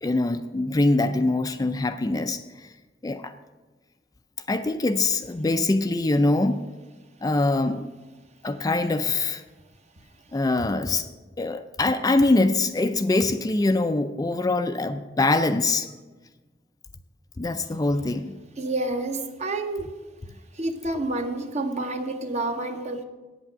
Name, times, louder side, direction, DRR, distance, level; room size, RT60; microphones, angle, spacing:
voice 1, 0.0-2.7 3.0-3.3 4.5-6.6 7.2-7.9 8.4-9.4 10.3-11.1 11.4-15.9 17.4-18.4, left 2 dB, 20° left, 0.4 m, -23 dB
voice 2, 18.6-19.9 20.5-23.0, right 2 dB, 40° right, 1.0 m, -29 dB
8.9 x 8.1 x 7.3 m
head